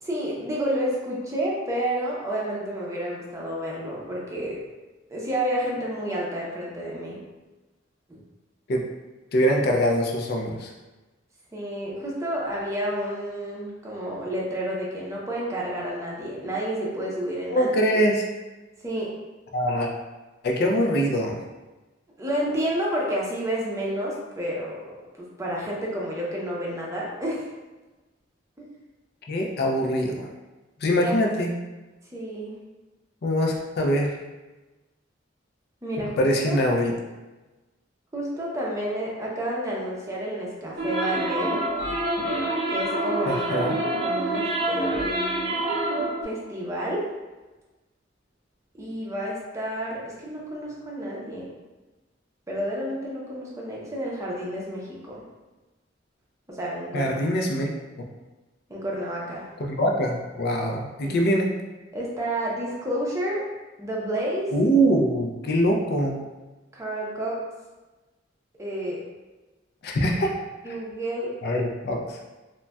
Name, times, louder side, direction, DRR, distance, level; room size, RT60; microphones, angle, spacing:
voice 1, 0.0-4.6 5.1-7.2 8.1-8.2 11.5-17.7 18.8-19.1 22.2-27.4 28.6-28.7 31.0-31.1 32.1-32.5 35.8-36.6 38.1-41.6 42.7-43.7 44.0-45.7 46.2-47.1 48.7-51.5 52.5-55.2 56.5-57.1 58.7-59.5 61.0-61.2 61.9-63.5 63.8-64.5 66.7-67.4 68.6-69.0 70.6-71.3, right 1 dB, 15° right, -4 dB, 0.6 m, -30 dB
voice 2, 9.3-10.7 17.5-18.3 19.5-19.9 20.4-21.4 29.3-30.3 30.8-31.5 33.2-34.2 36.2-36.9 43.3-43.8 56.9-57.7 59.6-61.5 64.5-66.2 69.8-70.3 70.7-70.8 71.4-72.2, equal, 55° left, 1 dB, 0.4 m, -23 dB
sound 1, 40.8-46.2, right 1 dB, 65° right, 0.6 m, -26 dB
3.8 x 2.1 x 2.2 m, 1.1 s
head